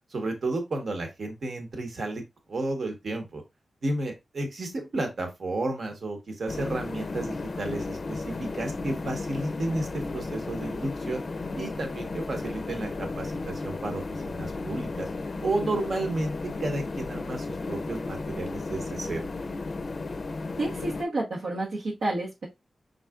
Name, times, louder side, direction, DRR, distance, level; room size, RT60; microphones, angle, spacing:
voice 1, 0.1-2.2 2.5-3.4 3.8-11.2 11.5-15.1 15.4-19.3, right 2 dB, 60° right, 5 dB, 1.1 m, -32 dB
sound 1, 6.5-21.0, left 3 dB, 45° left, 0.4 m, -34 dB
voice 2, 20.6-22.5, right 2 dB, 80° right, -4 dB, 1.0 m, -30 dB
5.5 x 3.9 x 2.4 m, 0.21 s
wide cardioid pair, 140°, 0 cm